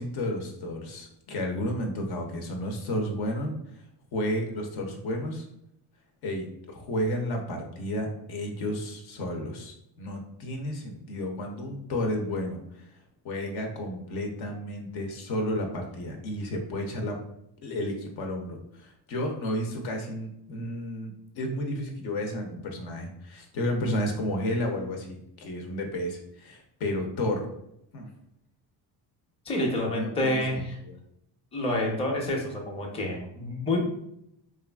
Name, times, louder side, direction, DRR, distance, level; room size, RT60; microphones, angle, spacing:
voice 1, 0.0-3.5 4.1-5.4 6.2-12.9 13.2-17.2 17.6-27.5 27.9-28.1 29.8-31.0, left 1 dB, 65° left, 3 dB, 0.7 m, -32 dB
voice 2, 29.5-30.8 31.5-33.8, left 1 dB, 15° left, -1 dB, 0.6 m, -28 dB
3.1 x 2.4 x 2.2 m, 0.77 s
cardioid pair, 100°, 42 cm